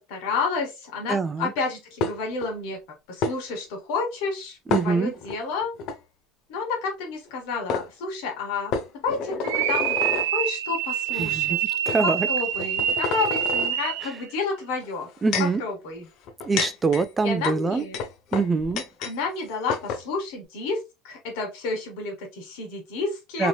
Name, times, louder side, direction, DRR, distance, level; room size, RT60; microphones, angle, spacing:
voice 1, 0.1-2.8 3.1-5.8 6.5-8.7 9.0-10.0 10.3-11.6 12.0-15.1 15.6-16.1 17.2-18.0 19.0-23.5, left 4 dB, 70° left, 1.4 m, -30 dB
voice 2, 1.1-1.5 4.7-5.1 11.2-11.6 11.9-12.3 15.2-15.6 16.5-17.9 18.3-18.8 23.4-23.5, right 4 dB, 15° right, 0.3 m, -24 dB
sound 1, 2.0-2.5 3.2-3.4 4.7-5.4 5.8-6.0 7.3-7.4 7.7-7.9 8.7-10.3 11.1-11.2 11.9-12.0 12.5-13.7 14.8-15.6 16.2-19.2 19.4-19.5 19.7-20.0, left 5 dB, 55° left, 0.5 m, -29 dB
sound 2, 9.4-14.2, right 10 dB, 90° right, 0.4 m, -26 dB
3.0 x 2.8 x 2.2 m
supercardioid pair, 125°, 0 cm